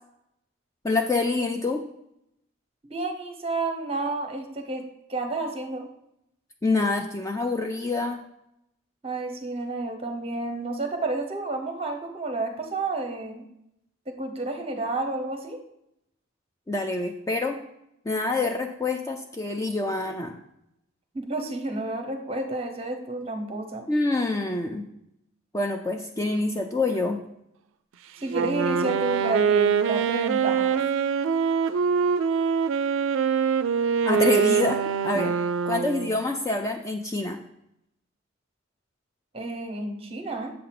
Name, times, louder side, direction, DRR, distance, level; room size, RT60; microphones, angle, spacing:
voice 1, 0.8-1.8 6.6-8.2 16.7-17.6 18.1-20.3 23.9-24.8 25.5-27.2 34.0-35.4 35.7-37.4, left 3 dB, 15° left, 4 dB, 0.4 m, -26 dB
voice 2, 2.9-4.8 5.1-5.9 9.0-13.4 14.2-15.6 21.1-23.9 26.2-26.4 28.2-30.8 35.1-35.2 39.3-40.5, right 2 dB, 30° right, 5 dB, 0.8 m, -30 dB
Wind instrument woodwind instrument, 28.3-36.2, right 6 dB, 75° right, 0.4 m, -24 dB
7.6 x 2.6 x 5.8 m, 0.80 s
head